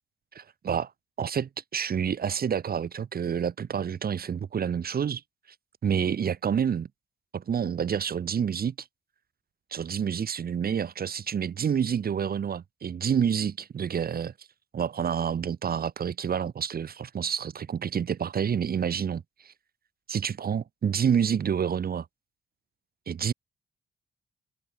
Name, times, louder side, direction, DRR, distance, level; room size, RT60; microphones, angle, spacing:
voice 1, 0.3-0.9 1.2-5.2 5.8-6.9 7.3-8.9 9.7-14.3 14.7-19.5 20.1-22.1 23.1-23.3, right 7 dB, 55° right, 1.8 m, -28 dB
hypercardioid pair, 50°, 19 cm